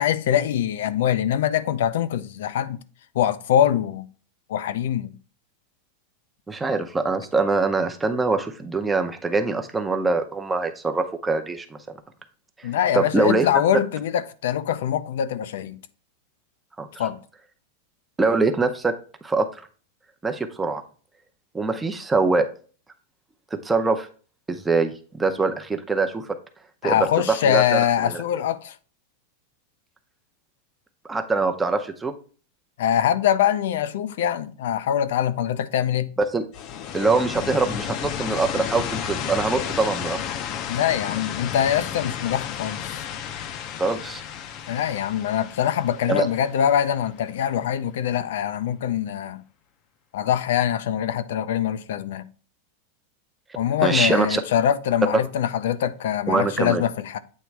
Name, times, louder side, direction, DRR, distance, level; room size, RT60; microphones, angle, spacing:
voice 1, 0.0-2.8 3.1-4.1 4.5-5.1 12.6-15.8 17.0-17.2 26.8-28.7 32.8-36.1 40.7-43.0 44.7-49.4 50.1-52.3 53.6-57.2, left 10 dB, 75° left, 0.5 m, -23 dB
voice 2, 6.5-11.7 12.6-12.7 12.9-13.5 16.8-17.1 18.2-18.9 19.2-19.5 20.2-20.8 21.5-22.5 23.5-24.1 24.5-26.3 26.8-28.2 31.1-32.1 36.3-36.4 36.9-40.2 43.8-44.2 46.1-46.3 53.8-54.4 56.3-56.8, right 3 dB, 10° right, 0.7 m, -23 dB
sound 1, 36.5-47.2, left 9 dB, 35° left, 0.6 m, -32 dB
8.4 x 3.1 x 4.6 m
supercardioid pair, 155°, 0 cm